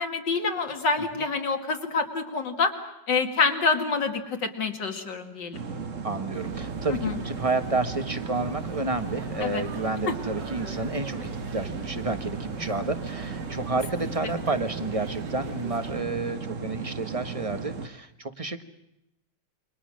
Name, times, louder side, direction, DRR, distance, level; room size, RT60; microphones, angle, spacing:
voice 1, 0.0-2.7 3.1-5.6 7.0-7.1 9.4-9.6 10.1-10.2 16.2-16.3, left 4 dB, 75° left, 5 dB, 2.9 m, -27 dB
sound 1, 5.5-17.9, right 5 dB, 45° right, 1.7 m, -36 dB
voice 2, 6.0-18.6, right 3 dB, 20° right, 9 dB, 1.2 m, -30 dB
sound 2, 6.3-16.0, right 4 dB, 75° right, 2.7 m, -41 dB
28.5 x 24.0 x 6.4 m, 0.86 s
omnidirectional pair, 1.9 m